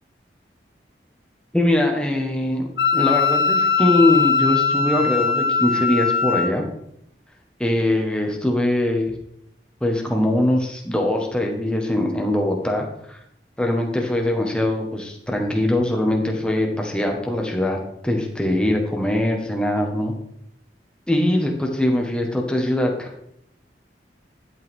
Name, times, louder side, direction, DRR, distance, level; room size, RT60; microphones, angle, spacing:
voice 1, 1.5-2.7 2.9-6.6 7.6-9.1 9.8-13.2 13.6-17.8 18.0-20.1 21.1-23.3, left 1 dB, 5° left, 1 dB, 1.6 m, -22 dB
Wind instrument woodwind instrument, 2.8-6.5, left 5 dB, 70° left, 0.9 m, -20 dB
11.5 x 8.2 x 3.8 m, 0.74 s
head